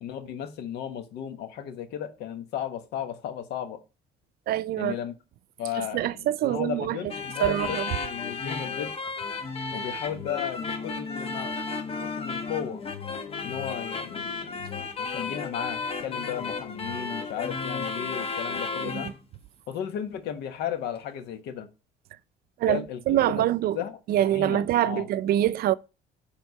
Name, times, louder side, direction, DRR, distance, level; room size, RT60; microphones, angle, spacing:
voice 1, 0.0-3.8 4.8-5.1 5.6-8.9 9.7-11.6 12.0-12.8 13.4-14.7 15.0-19.1 19.7-21.7 22.7-23.4 23.7-25.1, left 9 dB, 80° left, 1.3 m, -35 dB
voice 2, 4.5-4.9 5.8-7.0 7.4-7.9 18.8-19.1 22.6-23.8 24.1-25.8, right 12 dB, 65° right, 0.5 m, -25 dB
sound 1, 7.1-19.2, left 4 dB, 35° left, 1.1 m, -33 dB
9.5 x 3.7 x 5.5 m
cardioid pair, 110°, 17 cm